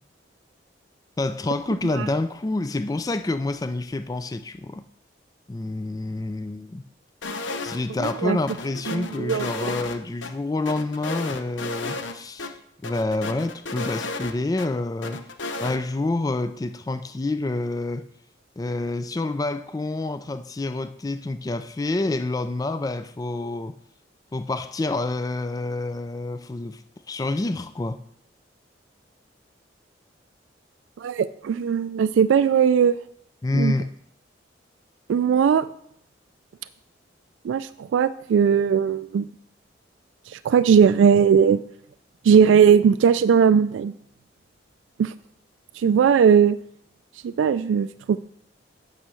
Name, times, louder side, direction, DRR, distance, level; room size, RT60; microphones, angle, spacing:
voice 1, 1.2-4.8 5.5-6.8 7.6-12.5 12.8-15.2 15.6-18.1 18.6-23.8 24.3-26.8 27.1-28.0 33.4-33.9, left 2 dB, 20° left, 0.3 m, -28 dB
sound 1, 7.2-7.8 8.0-8.1 8.5-10.3 10.7-12.1 12.4-12.5 12.8-14.7 15.0-15.8, left 3 dB, 80° left, 0.8 m, -33 dB
voice 2, 8.0-8.4 8.9-9.5 31.0-33.0 33.5-33.7 35.1-35.6 37.4-39.2 40.3-41.6 42.2-43.9 45.0-45.1 45.8-46.6 47.2-48.2, right 7 dB, 85° right, 0.3 m, -18 dB
8.8 x 5.5 x 6.3 m
head